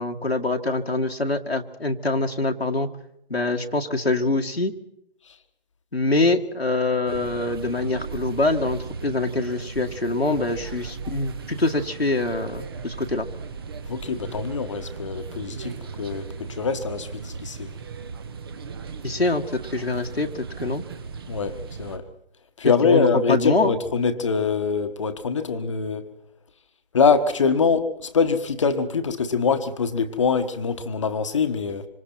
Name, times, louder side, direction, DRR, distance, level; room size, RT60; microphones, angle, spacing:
voice 1, 0.0-2.9 3.3-4.7 5.9-13.3 19.0-20.8 22.8-23.7, left 2 dB, 80° left, 4 dB, 2.1 m, -24 dB
sound 1, 7.1-22.0, right 5 dB, 25° right, 1.2 m, -37 dB
voice 2, 13.9-17.7 21.3-22.0 22.6-26.0 26.9-31.9, left 5 dB, 30° left, 10 dB, 1.5 m, -23 dB
26.5 x 26.5 x 4.5 m, 0.78 s
figure-of-eight pair, 150°, 31 cm